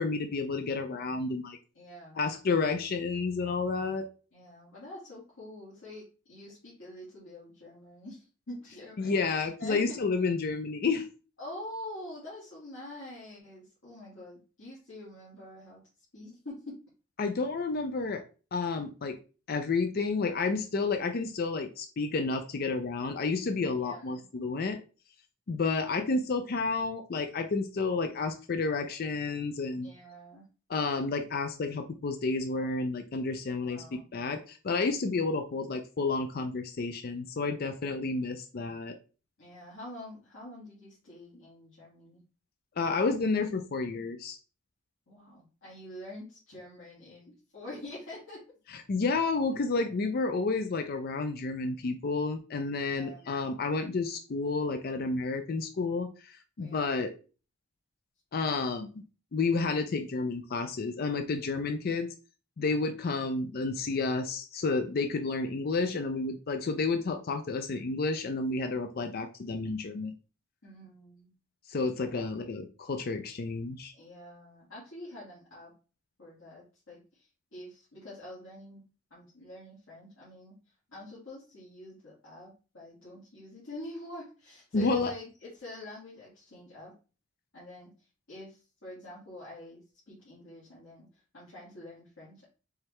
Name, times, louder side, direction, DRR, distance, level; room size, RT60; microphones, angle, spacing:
voice 1, 0.0-1.6 2.2-4.1 9.0-11.1 17.2-18.2 18.5-19.2 19.5-24.8 25.5-29.9 30.7-39.0 42.8-44.4 48.7-57.1 58.3-58.9 59.3-62.1 62.6-70.2 71.7-73.9 84.7-85.1, left 4 dB, 50° left, 7 dB, 0.4 m, -30 dB
voice 2, 1.7-2.3 4.3-10.0 11.4-15.8 16.1-16.8 23.8-24.2 29.8-30.4 33.6-34.1 39.4-42.2 45.1-48.4 52.8-53.4 56.6-57.0 70.6-71.3 72.1-72.3 73.9-75.7 76.2-78.8 79.1-80.6 80.9-86.9 87.5-87.9 88.3-91.1 91.3-92.5, left 1 dB, 75° left, -8 dB, 1.9 m, -46 dB
4.7 x 3.2 x 3.1 m, 0.35 s
head